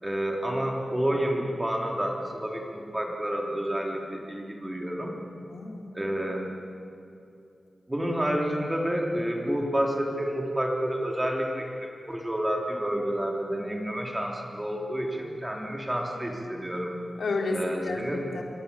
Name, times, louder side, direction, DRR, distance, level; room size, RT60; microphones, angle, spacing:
voice 1, 0.0-5.1 5.9-6.5 7.9-16.9 17.5-18.3, equal, 15° right, 0 dB, 3.7 m, -29 dB
voice 2, 5.5-5.9 17.2-18.4, left 3 dB, 80° left, 1 dB, 4.2 m, -31 dB
28.0 x 23.5 x 8.7 m, 2.6 s
wide cardioid pair, 135°, 0 cm